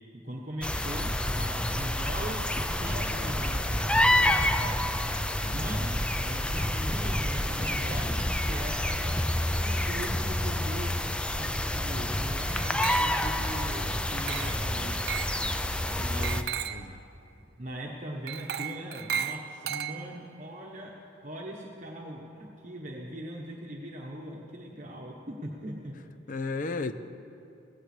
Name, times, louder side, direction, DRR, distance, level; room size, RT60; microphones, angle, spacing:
voice 1, 0.1-4.9 5.5-10.9 11.3-15.0 16.0-16.5 16.7-16.8 17.4-20.9 21.2-25.9, right 1 dB, 45° right, -2 dB, 1.1 m, -40 dB
sound 1, 0.6-16.4, left 1 dB, 5° left, 0.4 m, -28 dB
Glass, 12.6-13.4 14.3-14.7 15.1-15.4 16.2-16.9 18.3-20.3, right 8 dB, 60° right, 0.6 m, -35 dB
voice 2, 15.9-16.3 16.7-17.0 26.3-26.9, left 3 dB, 50° left, 10 dB, 0.6 m, -35 dB
16.5 x 16.5 x 3.3 m, 2.6 s
head